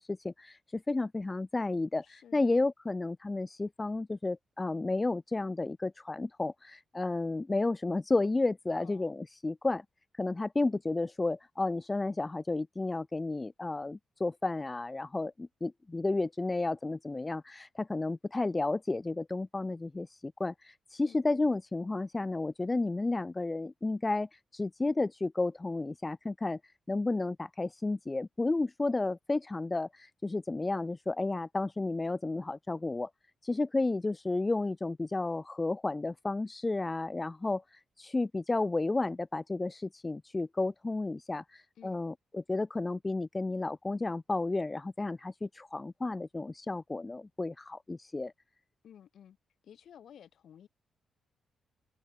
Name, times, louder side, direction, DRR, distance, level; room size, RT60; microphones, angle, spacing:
voice 1, 0.0-9.8 10.1-33.1 33.4-48.3, left 2 dB, 15° left, 0.4 m, -32 dB
voice 2, 2.0-2.5 8.7-9.1 21.0-21.2 41.8-42.0 48.8-49.4 49.6-50.7, left 9 dB, 55° left, 3.9 m, -54 dB
wide cardioid pair, 180°, 0 cm